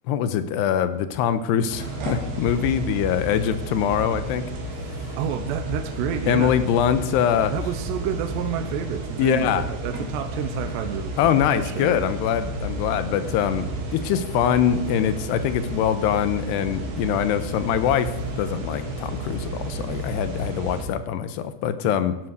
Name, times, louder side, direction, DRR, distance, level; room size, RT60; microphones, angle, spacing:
voice 1, 0.1-4.5 5.1-5.2 6.3-7.5 9.2-9.6 11.2-22.2, left 9 dB, 80° left, 12 dB, 2.9 m, -23 dB
sound 1, 1.7-20.8, right 1 dB, 65° right, 4.8 m, -32 dB
voice 2, 5.2-6.6 7.5-12.0, right 8 dB, 80° right, 7 dB, 3.0 m, -29 dB
sound 2, 11.3-20.1, left 1 dB, 40° left, 4.2 m, -41 dB
15.0 x 12.0 x 6.5 m, 0.91 s
omnidirectional pair, 4.9 m